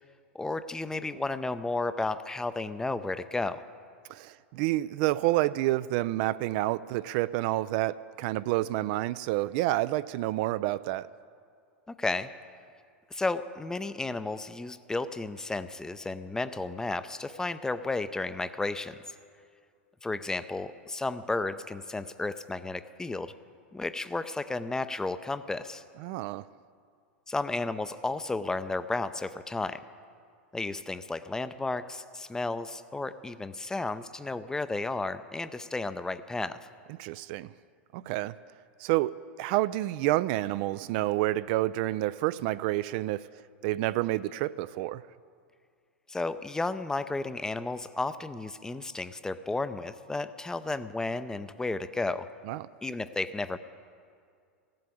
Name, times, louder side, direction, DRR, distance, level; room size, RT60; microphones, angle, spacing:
voice 1, 0.3-3.6 11.9-12.3 13.1-19.0 20.0-23.3 23.7-25.8 27.3-29.8 30.5-36.6 46.1-52.3 52.8-53.6, left 3 dB, 10° left, 13 dB, 0.5 m, -33 dB
voice 2, 4.1-11.1 26.0-26.4 37.0-37.5 37.9-38.3 38.8-43.3 43.6-45.0 52.5-52.7, right 16 dB, 50° right, 16 dB, 0.3 m, -29 dB
15.5 x 7.8 x 8.6 m, 2.2 s
hypercardioid pair, 95°, 7 cm